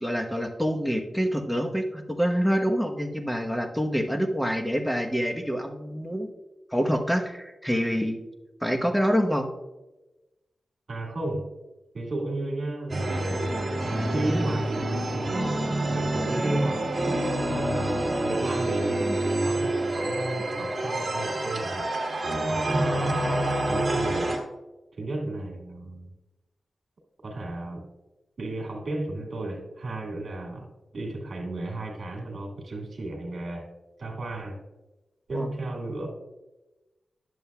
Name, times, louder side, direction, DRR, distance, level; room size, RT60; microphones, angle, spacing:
voice 1, 0.0-6.3 6.7-8.2 8.6-9.5 19.0-19.2 35.3-35.5, equal, 5° left, 4 dB, 1.1 m, -26 dB
voice 2, 10.9-11.5 11.9-13.8 14.1-15.4 15.9-16.9 17.4-21.9 22.5-24.3 24.9-26.1 27.2-27.9 28.4-33.7 34.0-34.6 35.3-36.1, right 2 dB, 65° right, 1 dB, 1.9 m, -33 dB
sound 1, 12.9-24.4, right 1 dB, 50° right, 1.7 m, -27 dB
10.5 x 7.1 x 2.3 m, 1.1 s
cardioid pair, 50°, 0 cm